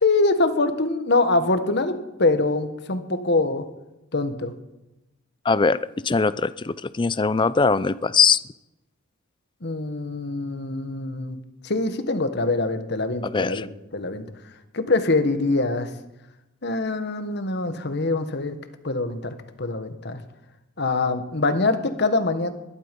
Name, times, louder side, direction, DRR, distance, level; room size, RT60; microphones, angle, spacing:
voice 1, 0.0-3.6 4.1-4.5 9.6-11.4 11.6-14.2 14.7-15.9 16.6-18.6 18.8-20.2 20.8-22.5, left 3 dB, 55° left, 9 dB, 1.4 m, -24 dB
voice 2, 5.5-5.8 6.0-8.4 13.3-13.7, left 4 dB, 25° left, 17 dB, 0.4 m, -21 dB
21.5 x 11.5 x 5.3 m, 0.98 s
head